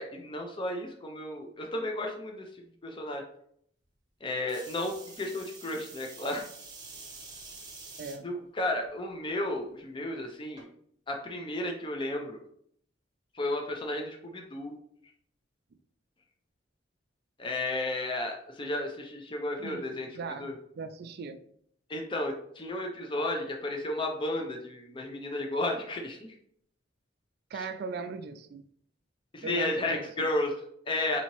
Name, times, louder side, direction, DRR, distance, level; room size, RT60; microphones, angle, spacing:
voice 1, 0.0-2.5 2.8-3.2 4.2-6.4 8.2-10.7 11.1-12.4 13.3-14.8 17.4-20.1 20.4-20.5 21.9-26.3 27.6-27.7 29.3-31.2, left 1 dB, 25° left, 2 dB, 0.5 m, -33 dB
sound 1, 4.5-8.2 8.8-9.3 10.6-10.7, right 4 dB, 25° right, 0.8 m, -47 dB
voice 2, 8.0-8.3 19.6-21.4 27.5-28.6 29.4-30.3, right 4 dB, 60° right, 9 dB, 0.4 m, -39 dB
4.0 x 2.7 x 2.9 m, 0.67 s
head